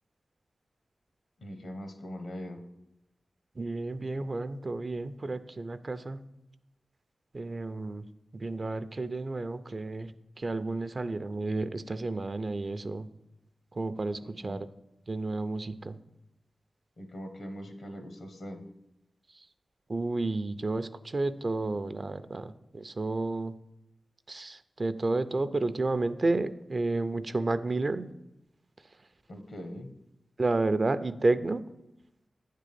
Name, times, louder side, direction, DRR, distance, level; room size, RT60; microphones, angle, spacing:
voice 1, 1.4-2.6 14.4-14.6 17.0-18.6 29.3-29.9, equal, 75° left, 6 dB, 1.1 m, -41 dB
voice 2, 3.6-6.2 7.3-8.0 8.3-13.1 13.7-14.7 15.1-16.0 19.3-19.5 19.9-23.6 24.3-28.1 30.4-31.6, right 2 dB, 45° right, 12 dB, 0.4 m, -31 dB
9.0 x 3.7 x 6.8 m, 0.88 s
cardioid pair, 65°, 0 cm